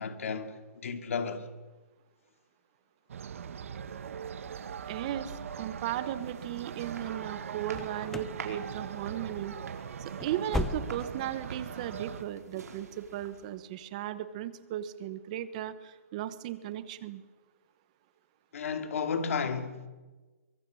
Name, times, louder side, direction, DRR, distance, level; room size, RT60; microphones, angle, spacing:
voice 1, 0.0-1.5 18.5-19.9, left 5 dB, 60° left, 2.6 m, -33 dB
sound 1, 3.1-12.2, right 7 dB, 55° right, 1.5 m, -41 dB
voice 2, 4.9-9.6 10.0-17.2, right 12 dB, 25° right, 1.1 m, -36 dB
sound 2, 6.0-13.7, right 5 dB, 90° right, 4.9 m, -48 dB
sound 3, 7.7-8.4 8.7-9.1 9.4-9.6 10.0-11.3 11.6-11.7 12.2-12.3, left 3 dB, 5° left, 0.8 m, -36 dB
24.0 x 24.0 x 6.4 m
hypercardioid pair, 175°, 8 cm